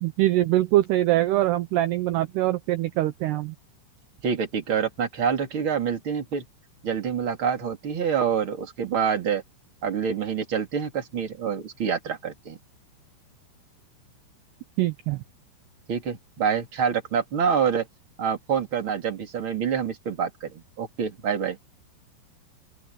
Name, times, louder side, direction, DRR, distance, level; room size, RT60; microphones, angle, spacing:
voice 1, 0.0-3.6 14.8-15.2, right 15 dB, 80° right, 2.4 m, -23 dB
voice 2, 4.2-6.4 6.8-9.4 9.8-12.6 15.9-17.9 18.2-21.6, right 7 dB, 30° right, 3.2 m, -26 dB
open air
omnidirectional pair, 5.9 m